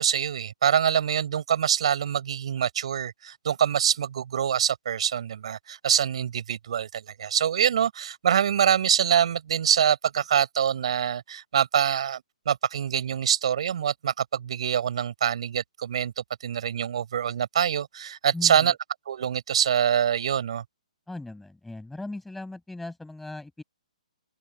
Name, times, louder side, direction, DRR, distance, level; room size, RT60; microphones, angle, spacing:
voice 1, 0.0-18.7 19.0-20.6, right 9 dB, 50° right, 5.2 m, -25 dB
voice 2, 18.3-18.7 21.1-23.6, left 2 dB, 5° left, 7.9 m, -38 dB
figure-of-eight pair, 130°, 4 cm